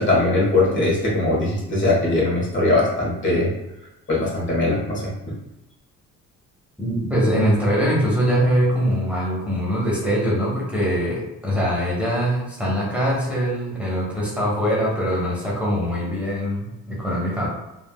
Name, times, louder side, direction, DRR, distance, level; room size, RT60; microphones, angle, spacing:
voice 1, 0.0-3.5 4.1-5.1, left 2 dB, 40° left, -5 dB, 1.4 m, -20 dB
voice 2, 6.8-17.5, equal, 5° right, -7 dB, 1.1 m, -22 dB
3.4 x 2.4 x 2.3 m, 0.95 s
cardioid pair, 90°, 30 cm